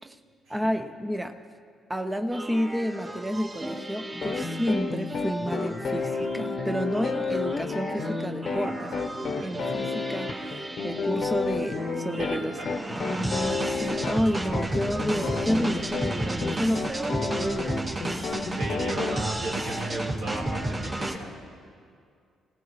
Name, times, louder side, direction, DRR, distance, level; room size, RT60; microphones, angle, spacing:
voice 1, 0.5-1.4 1.9-12.6 13.0-17.9, equal, 10° right, 5 dB, 0.8 m, -30 dB
sound 1, 2.3-21.2, right 1 dB, 30° right, 2.3 m, -33 dB
sound 2, 4.2-19.2, left 4 dB, 55° left, 0.9 m, -31 dB
voice 2, 8.6-9.6 12.2-12.7 16.3-16.8 18.3-21.3, right 2 dB, 85° right, -5 dB, 4.2 m, -36 dB
25.5 x 17.5 x 3.2 m, 2.3 s
cardioid pair, 90°, 0 cm